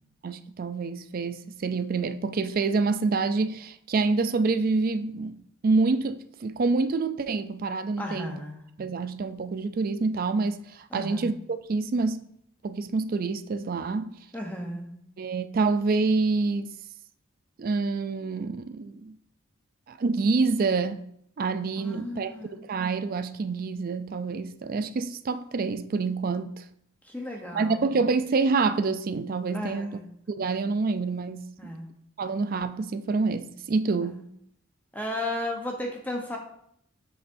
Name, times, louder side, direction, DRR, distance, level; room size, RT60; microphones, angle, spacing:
voice 1, 0.2-5.4 5.6-8.4 8.8-11.3 11.7-12.3 12.6-14.2 15.2-16.7 17.6-19.1 19.9-21.0 21.4-26.6 27.5-29.9 30.3-31.7 32.2-34.2, right 4 dB, 40° right, 0.3 m, -27 dB
voice 2, 8.0-8.6 10.9-11.3 14.3-14.9 21.8-22.6 27.0-27.9 29.5-30.1 31.6-31.9 34.0-34.2 34.9-36.4, left 1 dB, 10° left, 0.8 m, -34 dB
7.7 x 6.6 x 2.6 m
head